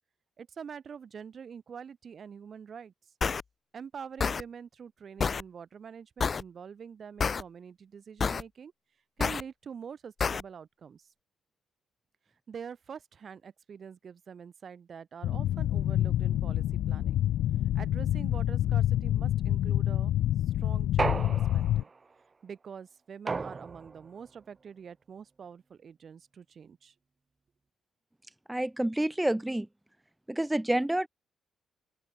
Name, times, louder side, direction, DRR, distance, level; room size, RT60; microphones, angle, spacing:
voice 1, 0.4-2.9 3.7-8.7 9.2-11.1 12.5-17.2 17.8-20.1 20.6-21.9 22.4-26.9, right 7 dB, 40° right, 6.8 m, -45 dB
sound 1, 3.2-3.4 4.2-4.4 5.2-5.4 6.2-6.4 7.2-7.4 8.2-8.4 9.2-9.4 10.2-10.4, left 5 dB, 30° left, 1.2 m, -28 dB
sound 2, 15.2-21.8, left 12 dB, 75° left, 0.4 m, -27 dB
sound 3, 21.0-22.0 23.3-24.1, right 4 dB, 20° right, 2.4 m, -33 dB
voice 2, 28.5-29.7 30.3-31.1, right 1 dB, 5° right, 2.1 m, -28 dB
open air
cardioid pair, 150°, 0 cm